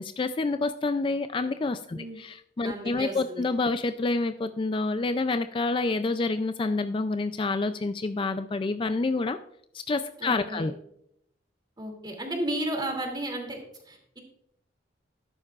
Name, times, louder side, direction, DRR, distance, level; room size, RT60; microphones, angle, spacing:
voice 1, 0.0-9.4 9.7-10.7, left 3 dB, 25° left, 10 dB, 0.3 m, -28 dB
voice 2, 2.6-3.4 10.2-10.7 11.8-13.6 13.9-14.2, right 1 dB, 25° right, 2 dB, 2.6 m, -33 dB
13.5 x 11.0 x 2.4 m, 0.75 s
head